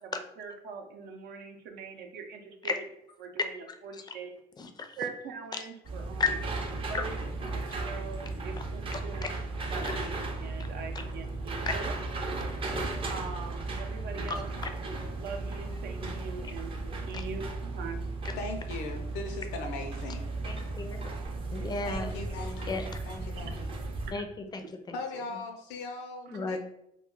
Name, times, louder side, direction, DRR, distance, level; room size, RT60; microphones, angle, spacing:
voice 1, 0.0-2.8 3.2-4.4 5.0-6.4 6.9-7.2 7.5-9.3 9.7-11.9 13.1-14.5 15.2-17.4 17.7-18.0 21.6-21.7 23.4-23.5 24.0-24.3, right 5 dB, 75° right, 4 dB, 0.6 m, -42 dB
voice 2, 3.4-4.1 4.6-4.9 5.6-5.7 6.2-6.3 8.9-9.3 11.7-11.8 14.3-14.4 17.1-17.2 20.4-21.1 21.5-22.2 22.7-22.9 24.1-24.6 26.3-26.6, left 4 dB, 25° left, 6 dB, 0.4 m, -33 dB
sound 1, 5.8-24.1, right 2 dB, 30° right, 0.5 m, -35 dB
voice 3, 18.4-20.3 21.9-23.7 24.9-26.6, left 3 dB, 85° left, 4 dB, 0.6 m, -39 dB
2.3 x 2.3 x 3.7 m, 0.80 s
cardioid pair, 110°, 17 cm